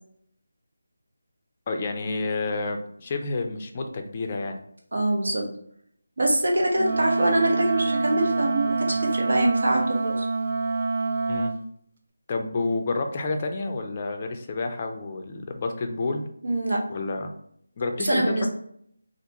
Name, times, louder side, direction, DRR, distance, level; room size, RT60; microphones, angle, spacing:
voice 1, 1.7-4.6 11.3-11.5 12.3-16.2 16.9-17.3 17.8-18.5, left 3 dB, 30° left, 4 dB, 0.4 m, -29 dB
voice 2, 4.9-5.4 6.2-10.3 16.4-16.8 18.0-18.5, right 1 dB, 70° right, -1 dB, 1.1 m, -24 dB
Wind instrument woodwind instrument, 6.7-11.6, right 3 dB, 40° right, 0.4 m, -26 dB
3.4 x 2.4 x 2.9 m, 0.68 s
figure-of-eight pair, 170°, 0 cm